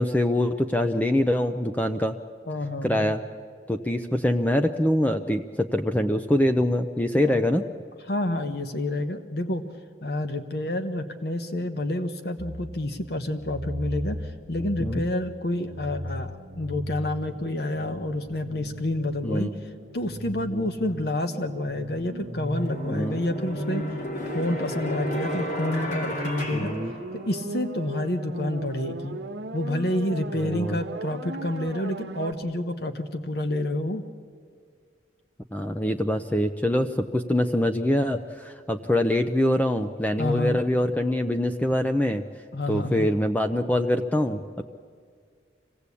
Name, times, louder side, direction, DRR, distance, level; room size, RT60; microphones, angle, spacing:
voice 1, 0.0-2.2 2.8-3.2 3.7-7.6 14.8-15.0 19.2-19.5 20.5-20.7 22.9-23.2 26.5-26.9 30.4-30.8 35.5-42.2 42.7-44.6, left 1 dB, 10° left, 7 dB, 0.5 m, -24 dB
voice 2, 2.5-3.1 7.2-7.4 8.1-9.6 10.0-19.6 19.9-26.7 27.1-29.2 29.5-34.1 40.2-40.6 42.5-43.1, left 1 dB, 60° left, 8 dB, 1.0 m, -29 dB
sound 1, 12.4-32.3, right 1 dB, 75° right, 1.3 m, -37 dB
sound 2, 22.4-27.6, equal, 40° left, 2.6 m, -33 dB
25.5 x 17.0 x 8.4 m, 2.1 s
head